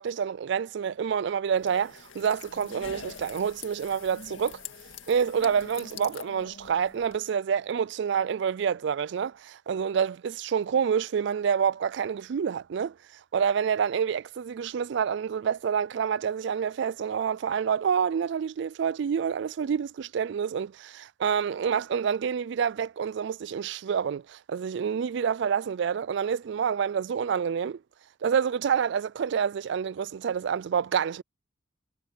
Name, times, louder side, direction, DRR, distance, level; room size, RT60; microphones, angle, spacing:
voice 1, 0.0-4.6 5.1-12.9 13.3-27.8 28.2-31.2, right 7 dB, 60° right, 0.3 m, -28 dB
sound 1, 1.5-7.2, left 6 dB, 75° left, 2.0 m, -44 dB
head